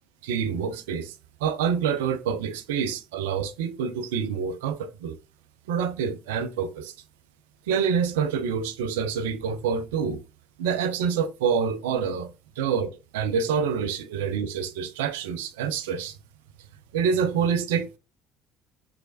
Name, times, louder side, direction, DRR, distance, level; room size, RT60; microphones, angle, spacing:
voice 1, 0.2-1.2 1.4-5.2 5.7-6.9 7.7-10.2 10.6-12.3 12.6-16.2 16.9-18.0, right 7 dB, 75° right, 0.3 m, -27 dB
3.2 x 3.1 x 2.6 m
hypercardioid pair, 55°, 0 cm